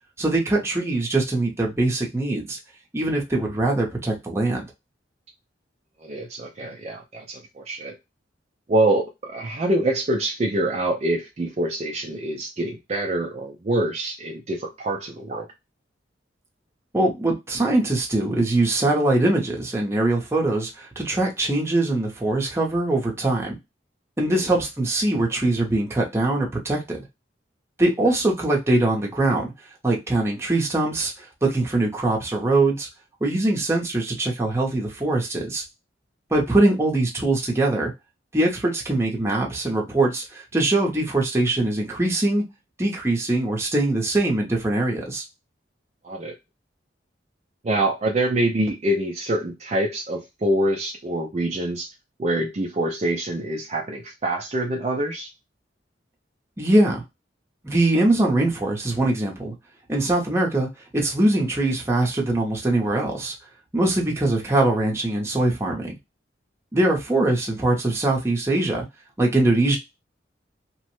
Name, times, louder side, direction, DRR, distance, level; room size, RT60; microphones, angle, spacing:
voice 1, 0.2-2.6 2.9-4.6 16.9-23.6 24.2-27.1 27.8-29.5 29.8-32.9 33.2-35.6 36.3-37.9 38.3-42.5 42.8-45.2 56.6-57.0 57.6-59.5 59.9-63.3 63.7-66.0 66.7-68.8 69.2-69.8, right 2 dB, 15° right, 0.7 m, -22 dB
voice 2, 6.0-8.0 8.7-15.5 24.2-24.5 46.0-46.4 47.6-51.9 52.2-55.3, right 1 dB, 35° right, 0.4 m, -25 dB
3.0 x 2.1 x 3.0 m
head